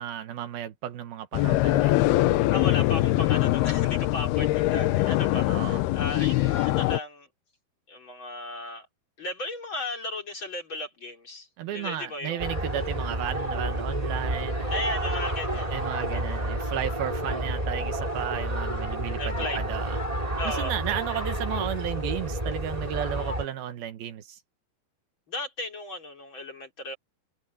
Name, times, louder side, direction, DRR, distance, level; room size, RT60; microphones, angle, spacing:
voice 1, 0.0-2.0 5.5-5.8 11.6-14.7 15.5-20.0 20.4-24.4, right 11 dB, 75° right, 3.1 m, -34 dB
sound 1, 1.3-7.0, left 17 dB, 85° left, 2.8 m, -23 dB
voice 2, 2.5-7.3 7.9-8.9 9.2-12.5 14.7-16.5 17.2-17.5 19.2-19.6 20.4-20.7 25.3-27.0, left 2 dB, 30° left, 3.9 m, -36 dB
sound 2, 12.4-23.5, right 1 dB, 10° right, 4.6 m, -30 dB
omnidirectional pair, 4.4 m